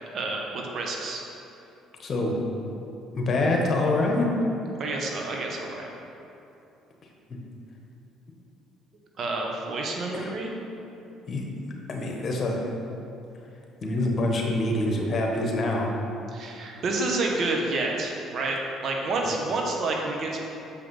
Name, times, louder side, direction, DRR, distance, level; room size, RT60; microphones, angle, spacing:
voice 1, 0.1-1.2 4.8-5.9 9.2-10.5 16.3-20.4, right 2 dB, 55° right, 0 dB, 1.3 m, -29 dB
voice 2, 2.0-2.4 3.1-4.3 10.1-10.3 11.3-12.6 13.8-15.9, left 2 dB, 45° left, 0 dB, 1.4 m, -26 dB
6.7 x 5.3 x 5.5 m, 2.9 s
supercardioid pair, 70°, 0 cm